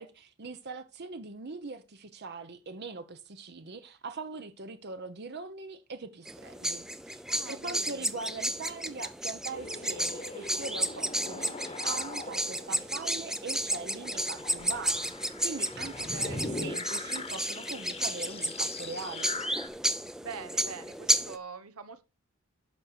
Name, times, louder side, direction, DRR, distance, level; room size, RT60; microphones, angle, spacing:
voice 1, 0.0-7.2 7.5-19.4, right 3 dB, 50° right, 0.9 m, -41 dB
sound 1, 6.3-21.4, right 1 dB, ahead, 0.6 m, -32 dB
voice 2, 7.3-8.1 15.8-16.5 20.2-22.1, right 5 dB, 85° right, 1.3 m, -44 dB
sound 2, 9.5-19.7, left 3 dB, 30° left, 1.2 m, -42 dB
10.5 x 6.5 x 4.4 m
head